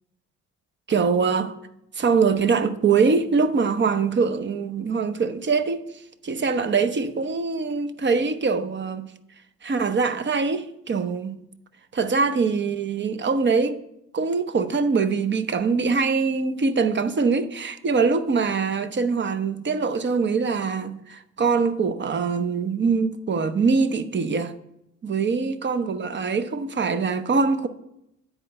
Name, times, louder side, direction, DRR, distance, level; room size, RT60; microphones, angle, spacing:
voice 1, 0.9-1.5 2.0-5.8 6.2-9.1 9.6-11.4 11.9-13.8 14.1-24.5 25.0-27.7, right 5 dB, 40° right, 0.8 m, -23 dB
10.0 x 4.4 x 7.7 m
cardioid pair, 90°, 30 cm